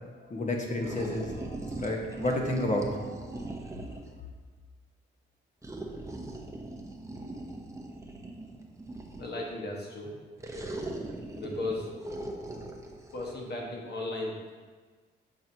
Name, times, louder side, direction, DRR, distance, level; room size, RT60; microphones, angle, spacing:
voice 1, 0.3-3.6, left 1 dB, 35° left, 0 dB, 1.3 m, -31 dB
sound 1, 0.8-4.2 5.6-9.4 10.4-13.3, right 2 dB, 15° right, 0.8 m, -40 dB
voice 2, 9.2-10.1 11.3-11.9 13.1-14.6, left 2 dB, 50° left, -1 dB, 1.5 m, -35 dB
7.2 x 4.6 x 2.9 m, 1.4 s
supercardioid pair, 65°, 21 cm